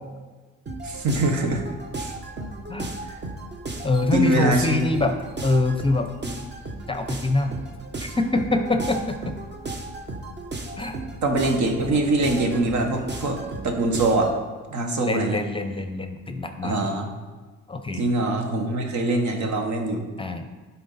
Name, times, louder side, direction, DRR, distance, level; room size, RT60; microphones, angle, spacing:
sound 1, 0.7-14.4, right 2 dB, 35° right, 1.0 m, -35 dB
voice 1, 0.8-1.6 2.0-2.1 4.1-4.8 11.2-14.3 14.7-15.4 16.6-17.1 17.9-20.1, right 2 dB, 70° right, 3 dB, 1.2 m, -23 dB
voice 2, 3.8-5.1 5.4-6.4 6.9-7.6 8.2-9.3 10.8-11.0 15.0-16.7 17.7-18.0 20.2-20.5, left 2 dB, 15° left, 7 dB, 0.6 m, -24 dB
10.5 x 4.2 x 4.1 m, 1.3 s
cardioid pair, 90°, 30 cm